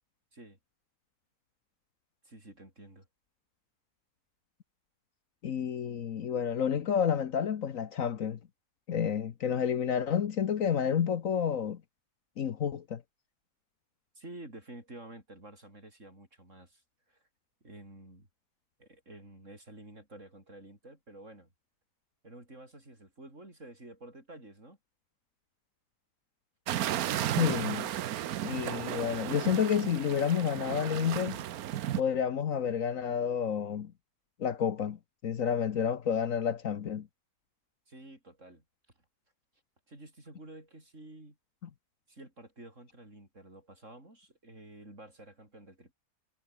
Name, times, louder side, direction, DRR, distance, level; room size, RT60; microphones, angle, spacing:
voice 1, 2.2-3.1 14.2-17.3 17.6-18.3 18.8-21.5 22.2-24.8 37.9-38.6 39.9-41.4 42.1-45.9, right 1 dB, 50° right, 7.3 m, -50 dB
voice 2, 5.4-8.4 8.9-11.8 12.4-13.0 27.3-27.9 28.4-31.4 32.0-33.9 34.4-35.0 35.2-37.1, left 8 dB, 60° left, 1.3 m, -30 dB
sound 1, 26.7-32.0, right 12 dB, 75° right, 1.2 m, -34 dB
omnidirectional pair, 1.6 m